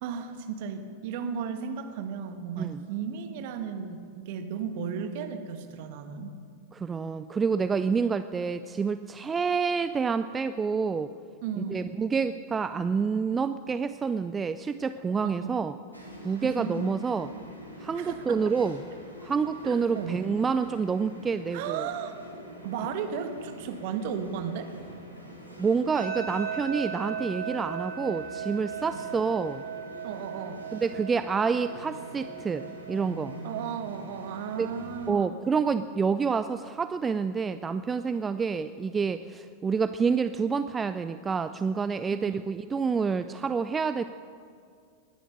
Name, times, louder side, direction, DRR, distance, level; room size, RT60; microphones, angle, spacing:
voice 1, 0.0-6.4 11.4-11.9 15.2-15.5 16.4-16.8 18.0-18.4 19.6-20.1 21.5-22.2 22.6-24.7 28.9-29.1 30.0-30.7 33.4-35.3 42.1-42.4, right 7 dB, 50° right, 7 dB, 1.4 m, -35 dB
voice 2, 6.7-11.1 11.6-15.7 16.2-17.3 17.8-18.8 19.2-21.9 25.6-29.6 30.7-33.4 34.6-34.7 35.1-44.0, right 5 dB, 15° right, 12 dB, 0.4 m, -28 dB
sound 1, 15.9-35.1, equal, 85° left, 3.1 m, -45 dB
sound 2, 25.9-35.0, right 7 dB, 65° right, 4.0 m, -38 dB
20.0 x 10.0 x 6.6 m, 2.3 s
figure-of-eight pair, 90°, 0 cm